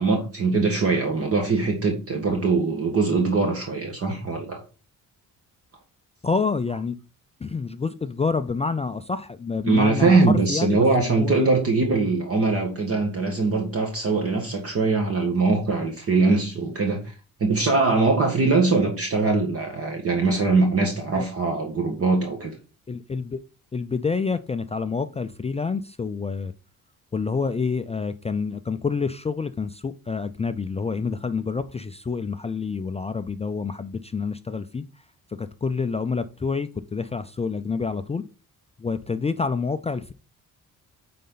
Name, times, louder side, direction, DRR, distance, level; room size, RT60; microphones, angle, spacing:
voice 1, 0.0-4.6 9.6-17.1 17.4-22.5, right 3 dB, 40° right, 1.6 m, -22 dB
voice 2, 6.2-7.0 7.4-11.5 21.1-21.3 22.9-23.4 23.7-26.5 27.1-34.8 35.3-38.2 38.8-40.1, left 4 dB, 20° left, 0.3 m, -28 dB
9.2 x 4.3 x 3.9 m
cardioid pair, 120°, 35 cm